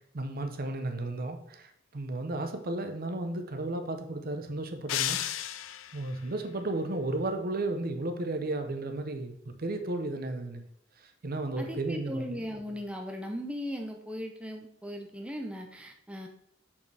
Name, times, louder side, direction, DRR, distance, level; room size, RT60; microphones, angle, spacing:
voice 1, 0.1-5.2 5.9-10.6 11.0-12.4, right 2 dB, 50° right, 7 dB, 0.8 m, -34 dB
sound 1, 4.9-6.1, left 12 dB, 85° left, 0.4 m, -33 dB
voice 2, 11.6-16.3, equal, 5° right, 3 dB, 0.6 m, -38 dB
6.7 x 5.6 x 3.3 m, 0.77 s
head